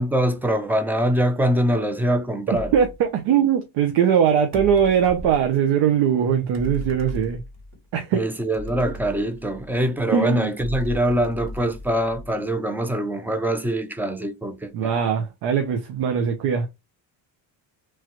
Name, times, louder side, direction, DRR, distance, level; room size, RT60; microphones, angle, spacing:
voice 1, 0.0-2.7 8.1-14.9, right 1 dB, 5° right, 0.4 m, -23 dB
sound 1, 2.5-3.0 4.5-5.5 6.5-7.8 8.5-9.9 10.6-12.5, left 1 dB, 35° right, 1.3 m, -36 dB
voice 2, 2.7-7.4 7.9-8.2 10.1-10.5 14.7-16.7, right 8 dB, 70° right, 0.7 m, -20 dB
3.2 x 2.3 x 2.9 m
cardioid pair, 100°, 45 cm